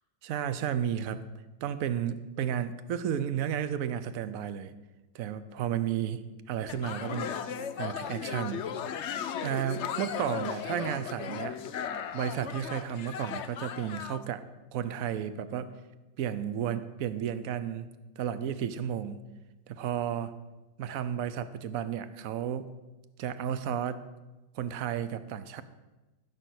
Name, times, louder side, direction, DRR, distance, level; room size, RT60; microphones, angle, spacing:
voice 1, 0.2-1.2 1.6-4.7 5.1-6.2 6.5-7.4 7.8-8.7 9.4-11.6 12.1-14.4 14.7-15.7 16.2-17.9 18.2-19.2 19.7-20.3 20.8-22.7 23.2-24.0 24.5-25.6, right 9 dB, 60° right, 13 dB, 0.9 m, -32 dB
sound 1, 6.7-14.2, left 8 dB, 80° left, 0.6 m, -36 dB
14.5 x 6.8 x 6.4 m, 1.1 s
omnidirectional pair, 2.0 m